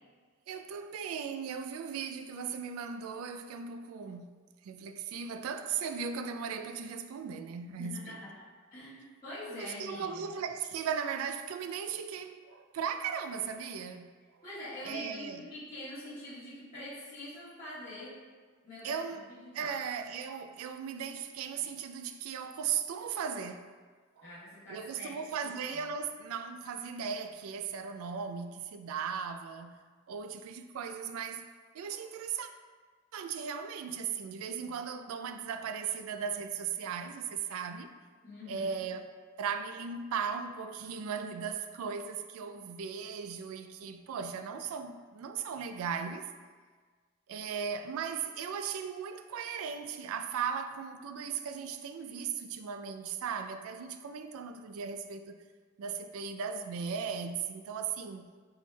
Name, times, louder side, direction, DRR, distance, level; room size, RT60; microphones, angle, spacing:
voice 1, 0.5-8.2 9.6-14.1 14.8-15.5 18.8-19.2 19.5-23.7 24.2-24.3 24.7-29.8 30.1-31.5 31.7-32.5 33.1-37.9 38.5-39.1 39.4-46.3 47.3-55.4 55.8-58.3, right 6 dB, 85° right, 0.3 m, -37 dB
voice 2, 7.7-8.3 8.7-10.3 14.4-18.2 18.6-19.0 19.3-19.8 24.2-25.5 38.2-38.8, left 1 dB, 35° left, 1.2 m, -44 dB
4.5 x 4.2 x 2.2 m
head